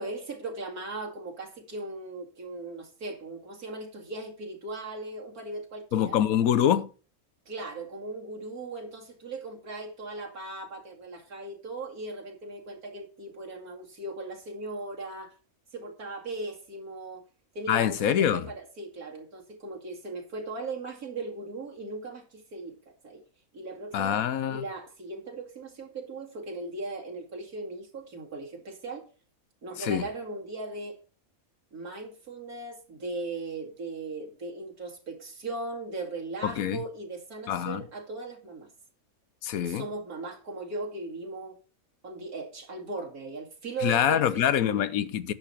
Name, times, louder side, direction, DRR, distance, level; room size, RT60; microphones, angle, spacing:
voice 1, 0.0-6.2 7.5-15.3 15.7-17.2 17.5-23.2 23.5-29.1 29.6-31.0 31.7-38.7 39.6-41.6 42.0-44.8, right 2 dB, 90° right, 2.7 m, -38 dB
voice 2, 5.9-6.9 17.7-18.4 23.9-24.6 29.8-30.0 36.4-36.8 37.5-37.8 39.4-39.8 43.8-45.3, left 10 dB, 80° left, 1.2 m, -25 dB
10.5 x 7.2 x 4.2 m
omnidirectional pair, 1.5 m